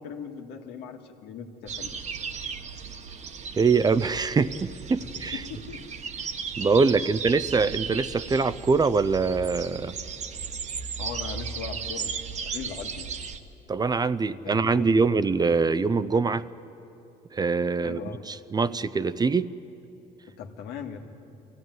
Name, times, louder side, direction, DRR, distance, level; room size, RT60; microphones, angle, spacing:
voice 1, 0.0-1.9 5.0-5.8 7.0-7.1 11.0-12.2 12.4-13.1 14.2-15.1 17.8-18.3 20.3-21.0, left 7 dB, 85° left, 4 dB, 1.9 m, -39 dB
sound 1, 1.7-13.4, right 6 dB, 45° right, 1.2 m, -36 dB
voice 2, 3.6-5.4 6.6-9.9 13.7-16.5 17.3-18.0 18.5-19.5, right 4 dB, 25° right, 15 dB, 0.5 m, -23 dB
24.0 x 16.0 x 9.4 m, 2.8 s
cardioid pair, 110°, 17 cm